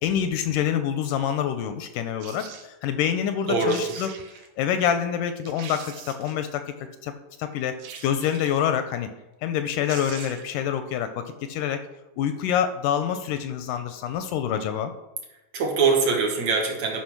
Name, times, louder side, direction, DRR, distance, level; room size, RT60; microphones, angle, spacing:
voice 1, 0.0-4.1 4.6-6.8 7.0-7.8 8.0-9.1 9.4-11.8 12.2-14.9, left 9 dB, 80° left, 9 dB, 2.0 m, -26 dB
sound 1, 2.2-2.7 3.4-3.5 3.7-4.5 5.0-5.1 5.5-6.5 7.8-8.7 9.5-9.6 9.9-10.6 10.9-11.0, right 7 dB, 85° right, 2.7 m, -42 dB
voice 2, 3.5-4.0 15.5-17.0, right 4 dB, 60° right, 1 dB, 2.2 m, -23 dB
11.5 x 5.0 x 6.0 m, 1.0 s
omnidirectional pair, 4.0 m